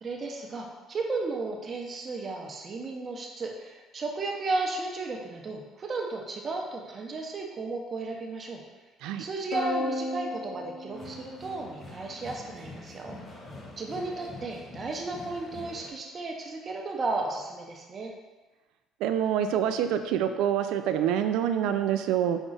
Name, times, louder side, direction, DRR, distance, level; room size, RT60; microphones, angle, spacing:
voice 1, 0.0-8.6 9.2-13.2 13.8-18.1, right 3 dB, 35° right, 1 dB, 0.7 m, -34 dB
sound 1, 9.5-12.1, left 1 dB, 70° left, 0.5 m, -35 dB
sound 2, 10.9-15.9, left 2 dB, 30° left, 0.7 m, -45 dB
voice 2, 19.0-22.4, right 9 dB, 80° right, 8 dB, 0.3 m, -26 dB
5.2 x 2.3 x 3.8 m, 1.2 s
cardioid pair, 105°, 0 cm